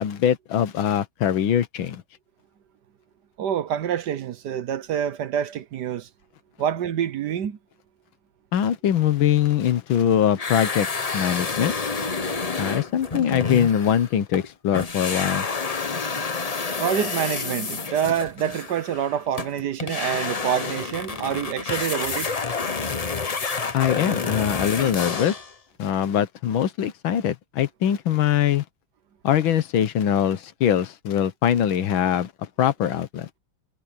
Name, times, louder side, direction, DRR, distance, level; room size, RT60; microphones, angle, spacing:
voice 1, 0.0-2.0 8.5-10.9 11.1-11.7 12.6-15.5 23.7-25.4 25.8-28.6 29.2-33.3, left 9 dB, 80° left, 1.8 m, -22 dB
voice 2, 3.4-6.1 6.6-7.6 16.8-22.4 22.8-22.9, right 9 dB, 60° right, 1.3 m, -27 dB
sound 1, 10.4-14.5 14.7-25.5, left 4 dB, 40° left, 0.5 m, -29 dB
omnidirectional pair, 2.2 m